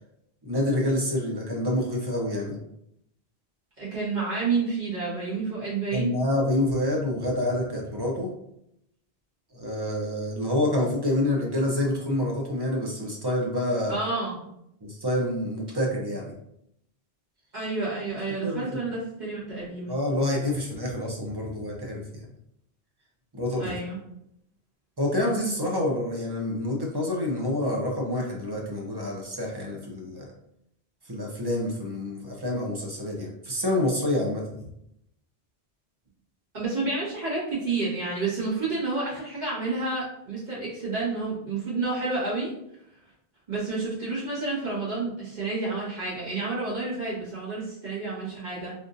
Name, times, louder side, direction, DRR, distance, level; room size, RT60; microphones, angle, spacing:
voice 1, 0.4-2.6 5.9-8.3 9.5-14.0 14.8-16.3 18.4-18.6 19.9-22.0 23.3-23.7 25.0-30.3 31.1-34.7, left 1 dB, 25° right, -2 dB, 0.6 m, -27 dB
voice 2, 3.8-6.2 13.9-14.4 17.5-19.9 23.6-24.0 36.5-42.5 43.5-48.7, right 3 dB, 45° right, -9 dB, 1.6 m, -30 dB
3.5 x 2.6 x 2.6 m, 0.77 s
omnidirectional pair, 1.1 m